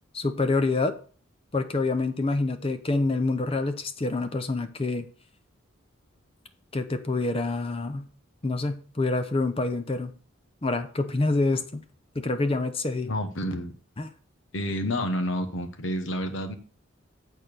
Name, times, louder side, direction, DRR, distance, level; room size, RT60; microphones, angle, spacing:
voice 1, 0.1-1.0 1.5-5.1 6.7-8.1 8.4-10.1 10.6-11.8 12.1-13.1 14.0-14.1, left 3 dB, 25° left, 0.7 m, -27 dB
voice 2, 13.0-13.7 14.5-16.6, equal, 65° left, 1.2 m, -29 dB
8.7 x 4.4 x 6.7 m
head